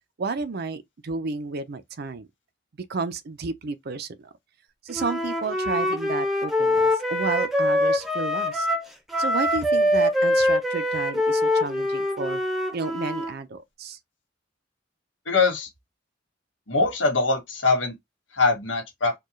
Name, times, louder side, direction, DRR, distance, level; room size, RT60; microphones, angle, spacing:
voice 1, 0.2-2.3 2.9-4.3 4.8-8.7 9.2-12.4 12.7-14.0, right 4 dB, 55° right, 0.5 m, -31 dB
Wind instrument woodwind instrument, 4.9-13.4, left 1 dB, ahead, 0.8 m, -24 dB
voice 2, 15.3-15.7 16.7-17.9 18.3-19.1, left 3 dB, 85° left, 1.7 m, -22 dB
4.5 x 2.3 x 3.1 m
head